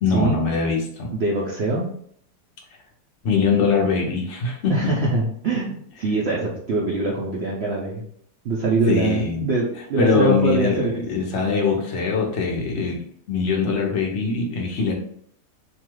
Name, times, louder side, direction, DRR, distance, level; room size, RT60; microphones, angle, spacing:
voice 1, 0.0-1.1 3.2-4.8 8.9-9.5 10.0-13.0 13.3-14.9, left 4 dB, 55° left, 0 dB, 0.9 m, -22 dB
voice 2, 1.1-1.9 4.7-8.0 8.4-10.9, right 3 dB, 70° right, -4 dB, 0.6 m, -23 dB
3.0 x 2.3 x 3.1 m, 0.62 s
omnidirectional pair, 1.8 m